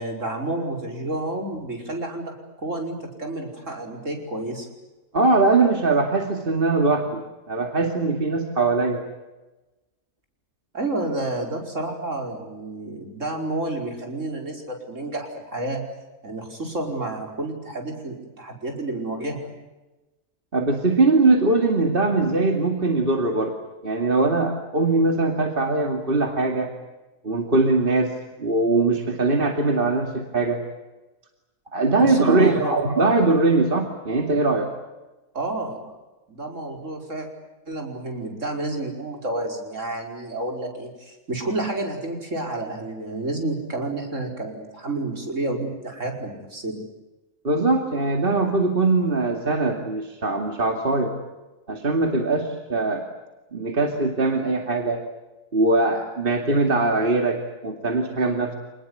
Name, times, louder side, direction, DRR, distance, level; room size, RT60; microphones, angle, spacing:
voice 1, 0.0-2.3 2.6-4.7 10.7-15.8 16.2-19.5 31.9-32.8 35.3-35.8 36.3-37.3 37.7-46.8, right 2 dB, 60° right, 3 dB, 5.6 m, -30 dB
voice 2, 5.1-7.2 7.5-9.0 20.5-23.5 23.8-26.7 27.2-28.1 28.4-30.6 31.7-34.7 47.4-51.1 51.7-53.0 53.5-55.0 55.5-58.6, right 3 dB, 40° right, 4 dB, 2.7 m, -21 dB
27.5 x 20.5 x 9.6 m, 1.1 s
omnidirectional pair, 1.5 m